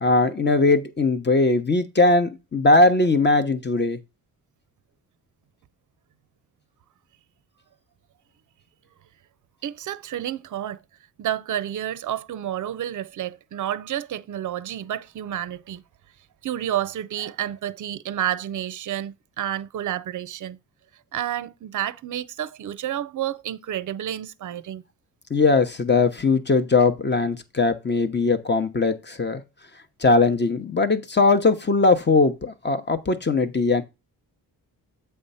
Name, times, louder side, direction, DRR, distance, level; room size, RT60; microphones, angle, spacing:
voice 1, 0.0-4.0 25.3-29.4 30.0-33.8, left 3 dB, 25° left, 0.9 m, -20 dB
voice 2, 9.6-10.8 11.2-15.8 16.4-20.6 21.1-24.8, right 11 dB, 50° right, 0.5 m, -30 dB
7.8 x 3.4 x 5.5 m
cardioid pair, 90°, 39 cm